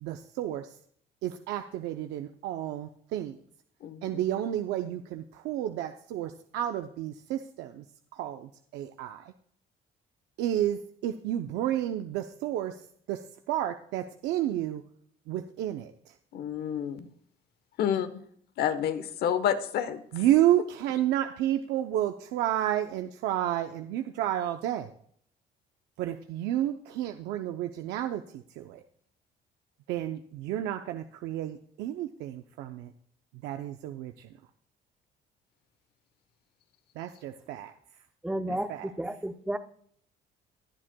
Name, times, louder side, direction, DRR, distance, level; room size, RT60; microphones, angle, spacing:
voice 1, 0.0-0.7 1.2-3.4 4.0-7.8 8.1-9.3 10.4-12.7 13.1-13.2 13.5-14.8 15.3-15.9 20.1-24.9 26.0-28.8 29.9-32.9 33.4-34.3 37.0-37.7 38.5-38.9, right 12 dB, 90° right, 6 dB, 0.6 m, -31 dB
voice 2, 3.8-4.2 16.3-17.1 17.8-18.1 18.6-20.0 38.5-38.6, left 9 dB, 70° left, 11 dB, 1.1 m, -29 dB
voice 3, 38.2-38.7 39.0-39.6, right 1 dB, 5° right, 9 dB, 0.7 m, -31 dB
22.0 x 7.6 x 2.2 m, 0.63 s
cardioid pair, 110°, 17 cm